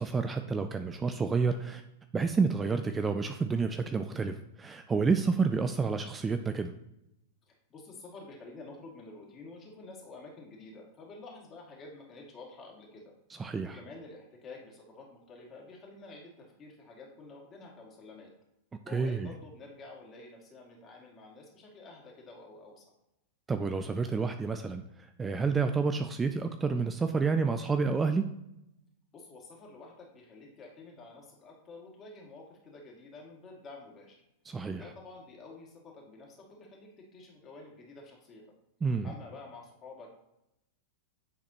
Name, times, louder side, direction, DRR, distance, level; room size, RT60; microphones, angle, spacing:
voice 1, 0.0-1.8 2.1-6.7 13.4-13.8 18.9-19.3 23.5-28.2 34.5-34.8 38.8-39.1, right 4 dB, 15° right, 8 dB, 0.4 m, -29 dB
voice 2, 7.5-13.1 13.6-18.3 18.8-22.9 29.1-34.2 34.7-38.4 39.0-40.1, left 3 dB, 30° left, -1 dB, 2.2 m, -49 dB
9.2 x 4.1 x 2.9 m, 0.85 s
hypercardioid pair, 105°, 0 cm